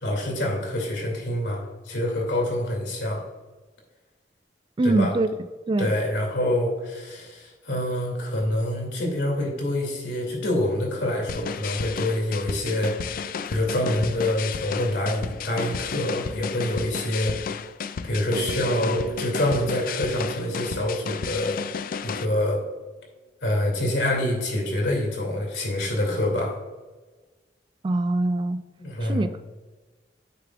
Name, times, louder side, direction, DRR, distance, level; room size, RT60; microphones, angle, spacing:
voice 1, 0.0-3.2 4.8-5.1 5.8-13.0 13.5-17.3 18.1-21.6 22.0-22.6 23.4-26.5 28.8-29.3, left 1 dB, 80° left, 2.5 m, -26 dB
voice 2, 4.8-5.3 5.7-5.9 27.8-28.6 29.0-29.4, right 2 dB, 25° right, 0.3 m, -23 dB
sound 1, 11.3-22.2, left 6 dB, 50° left, 0.3 m, -33 dB
Bass guitar, 18.3-22.7, right 5 dB, 85° right, 2.0 m, -38 dB
10.0 x 7.0 x 2.4 m
head